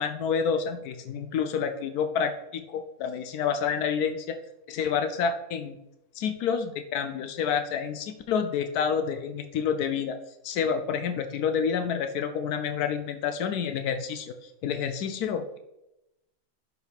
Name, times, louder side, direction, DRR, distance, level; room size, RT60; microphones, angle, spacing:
voice 1, 0.0-4.4 4.7-5.8 6.2-10.1 10.4-15.6, left 7 dB, 85° left, 7 dB, 1.1 m, -28 dB
12.0 x 4.7 x 3.5 m, 0.91 s
omnidirectional pair, 1.6 m